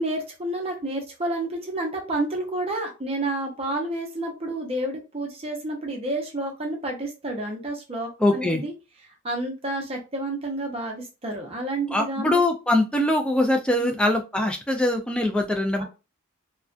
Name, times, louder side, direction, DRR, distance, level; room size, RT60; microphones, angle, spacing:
voice 1, 0.0-8.7 9.2-12.4 13.8-14.0 15.8-15.9, right 1 dB, 25° right, 1 dB, 0.6 m, -30 dB
voice 2, 8.2-8.6 11.9-15.8, left 1 dB, 5° left, 3 dB, 0.3 m, -22 dB
2.4 x 2.2 x 2.4 m, 0.29 s
head